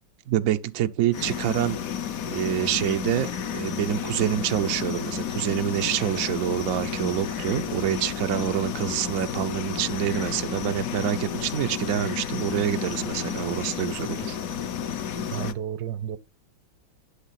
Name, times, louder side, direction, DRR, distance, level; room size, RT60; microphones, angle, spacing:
voice 1, 0.3-1.8 2.3-14.4, right 11 dB, 90° right, 0.7 m, -27 dB
sound 1, 1.1-15.5, left 7 dB, 65° left, 0.9 m, -31 dB
voice 2, 15.3-16.2, right 10 dB, 70° right, 1.0 m, -31 dB
12.0 x 6.4 x 5.7 m
omnidirectional pair, 2.2 m